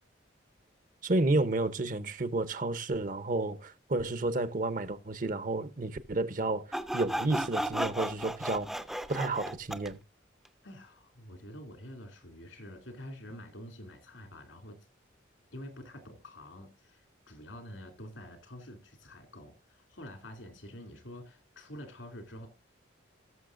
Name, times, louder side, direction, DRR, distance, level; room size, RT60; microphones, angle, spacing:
voice 1, 1.0-6.7 6.9-8.7 9.1-10.0, right 2 dB, 45° right, 0.8 m, -31 dB
Sawing, 6.7-9.9, right 1 dB, ahead, 0.5 m, -34 dB
voice 2, 10.6-14.8 15.5-22.5, left 1 dB, 80° left, 2.7 m, -47 dB
18.5 x 6.6 x 2.6 m
head